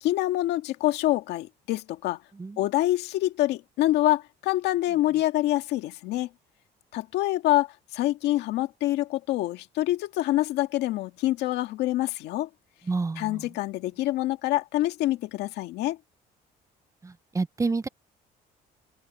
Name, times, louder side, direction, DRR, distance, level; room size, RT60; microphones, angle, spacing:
voice 1, 0.0-2.2 2.6-6.3 6.9-12.5 13.2-16.0, left 15 dB, 85° left, 1.9 m, -26 dB
voice 2, 12.9-13.4 17.0-17.9, right 3 dB, 20° right, 0.8 m, -29 dB
open air
cardioid pair, 110°, 17 cm